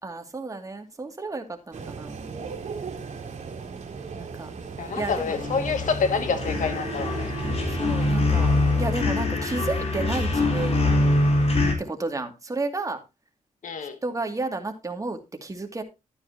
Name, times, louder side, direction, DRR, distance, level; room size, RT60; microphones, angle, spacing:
voice 1, 0.0-2.2 4.1-4.5 5.0-5.4 7.8-10.9 11.8-13.0 14.0-15.8, right 3 dB, 25° right, 2.3 m, -32 dB
sound 1, 1.7-9.1, right 5 dB, 60° right, 2.9 m, -36 dB
voice 2, 4.8-7.3 13.6-14.0, left 5 dB, 70° left, 2.0 m, -27 dB
sound 2, 5.0-11.7, left 2 dB, 50° left, 3.9 m, -24 dB
12.5 x 9.5 x 2.8 m
cardioid pair, 85°, 14 cm